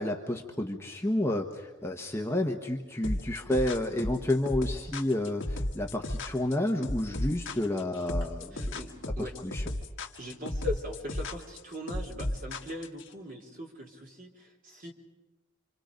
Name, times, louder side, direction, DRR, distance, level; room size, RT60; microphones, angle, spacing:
voice 1, 0.0-8.8 9.4-9.6, left 1 dB, 10° left, 2 dB, 1.1 m, -30 dB
sound 1, 3.0-13.1, left 1 dB, 65° left, 1.6 m, -34 dB
voice 2, 8.2-9.3 10.2-14.9, left 1 dB, 40° right, 1 dB, 3.4 m, -40 dB
27.5 x 26.0 x 5.2 m, 1.1 s
head